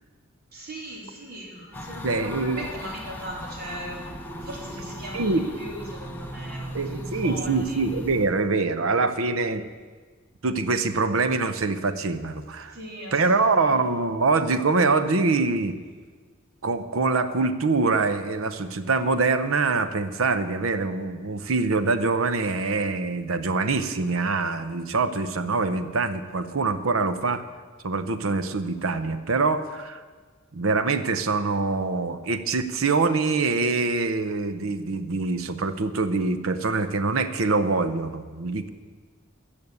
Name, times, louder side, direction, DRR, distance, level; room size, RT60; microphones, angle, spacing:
voice 1, 0.5-7.8 12.7-13.8, right 1 dB, 50° right, -2 dB, 3.3 m, -39 dB
sound 1, 1.7-8.3, equal, 10° left, 1.0 m, -37 dB
voice 2, 2.0-2.6 5.1-5.4 6.7-9.7 10.4-12.7 13.1-15.8 16.6-27.4 27.8-30.0 30.5-38.7, right 3 dB, 80° right, 11 dB, 0.8 m, -24 dB
14.0 x 7.0 x 8.1 m, 1.5 s
head